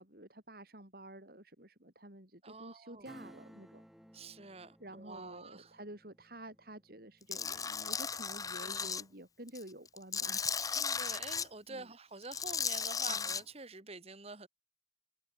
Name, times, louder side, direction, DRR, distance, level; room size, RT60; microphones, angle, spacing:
voice 1, 0.0-3.8 4.8-11.0 11.7-11.9 13.1-13.3, right 1 dB, 55° right, 5.3 m, -50 dB
voice 2, 2.4-3.1 4.1-5.8 8.6-9.0 10.6-14.5, right 3 dB, 35° right, 2.4 m, -48 dB
Acoustic guitar / Strum, 3.0-9.3 9.6-9.7, equal, ahead, 2.8 m, -59 dB
Tools, 7.3-9.0 9.5-11.5 12.2-13.4, left 6 dB, 20° left, 0.8 m, -36 dB
head